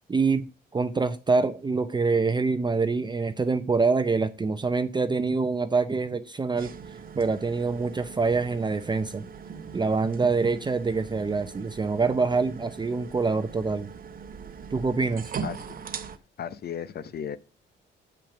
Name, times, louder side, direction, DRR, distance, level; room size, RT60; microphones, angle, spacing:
voice 1, 0.1-6.7 7.1-9.3 9.7-13.9 14.7-15.3, right 4 dB, 20° right, 0.6 m, -25 dB
sound 1, 6.6-16.2, right 6 dB, 45° right, 0.9 m, -41 dB
voice 2, 16.4-17.4, left 8 dB, 55° left, 0.8 m, -35 dB
7.3 x 5.7 x 5.8 m
cardioid pair, 90°, 20 cm